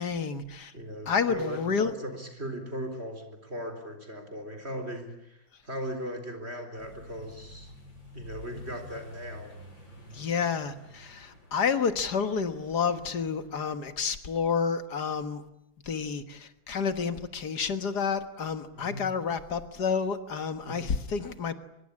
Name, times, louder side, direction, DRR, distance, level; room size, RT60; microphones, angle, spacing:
voice 1, 0.0-0.7 1.1-1.9 10.1-15.4 15.9-21.5, left 6 dB, 55° left, 10 dB, 2.0 m, -30 dB
voice 2, 0.7-7.7 8.1-9.5 18.7-19.1 20.6-20.9, equal, 30° right, 6 dB, 4.4 m, -38 dB
Accelerating revving vroom, 6.8-13.7, left 1 dB, 70° left, 7.8 m, -49 dB
24.5 x 22.5 x 9.9 m, 0.83 s
omnidirectional pair, 2.1 m